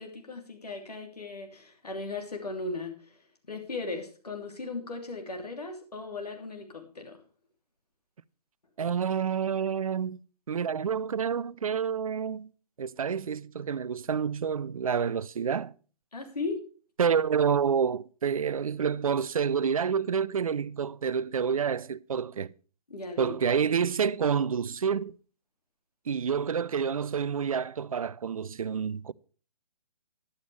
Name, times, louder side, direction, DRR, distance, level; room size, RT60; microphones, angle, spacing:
voice 1, 0.0-3.2 3.5-7.2 16.1-16.6 22.9-23.3, left 3 dB, 70° left, 3.0 m, -37 dB
voice 2, 8.8-10.2 10.5-12.5 12.8-15.7 17.0-22.5 23.2-25.1 26.1-29.1, right 7 dB, 60° right, 0.5 m, -28 dB
14.0 x 11.0 x 3.3 m
figure-of-eight pair, 130°, 20 cm